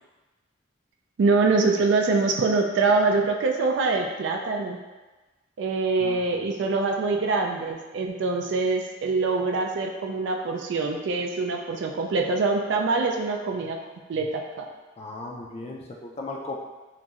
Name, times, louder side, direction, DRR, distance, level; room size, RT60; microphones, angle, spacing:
voice 1, 1.2-4.8 5.6-13.8 14.1-14.7, right 3 dB, 60° right, 2 dB, 0.3 m, -24 dB
voice 2, 6.0-6.5 15.0-16.6, left 2 dB, 30° left, -1 dB, 0.3 m, -37 dB
2.9 x 2.6 x 2.4 m, 1.2 s
head